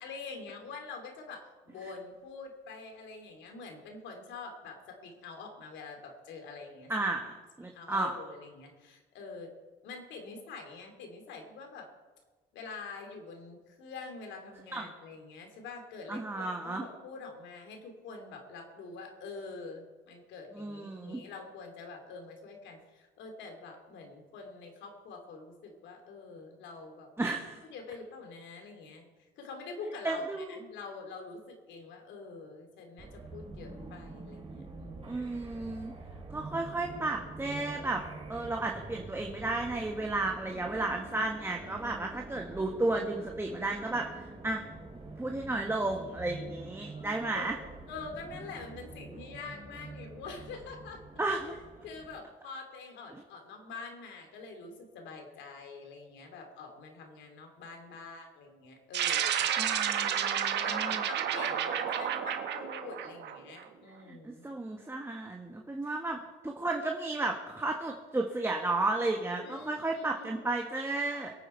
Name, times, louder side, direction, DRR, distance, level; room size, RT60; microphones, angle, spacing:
voice 1, 0.0-6.9 7.7-9.5 9.8-11.9 12.5-27.1 27.6-29.0 29.4-35.2 36.4-36.7 47.2-47.5 47.9-51.0 51.4-51.5 51.8-59.5 60.5-64.5 65.8-66.0 69.4-70.4, left 4 dB, 75° left, 4 dB, 3.2 m, -45 dB
voice 2, 6.9-8.2 14.7-14.8 16.1-16.8 20.5-21.2 27.2-27.6 30.0-30.6 35.0-35.9 36.3-38.0 38.3-44.6 45.2-47.5 51.2-51.6 53.1-53.2 59.6-61.0 64.1-71.3, right 2 dB, 10° right, 2 dB, 1.5 m, -33 dB
sound 1, 33.0-52.2, right 3 dB, 30° right, 3.0 m, -46 dB
sound 2, 58.9-63.6, right 9 dB, 65° right, 1.4 m, -31 dB
22.5 x 9.0 x 4.6 m, 1.3 s
cardioid pair, 90°, 19 cm